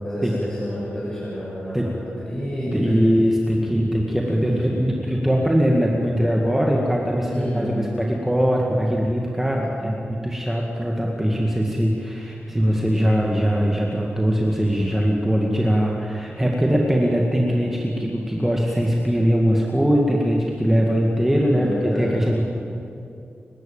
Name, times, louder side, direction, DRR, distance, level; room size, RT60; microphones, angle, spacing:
voice 1, 0.0-3.0 4.3-5.0 7.2-7.8 21.5-22.4, equal, 15° left, -7 dB, 6.5 m, -29 dB
voice 2, 2.7-22.4, equal, 10° right, -2 dB, 2.2 m, -21 dB
30.0 x 12.5 x 9.0 m, 2.6 s
wide cardioid pair, 145°, 4 cm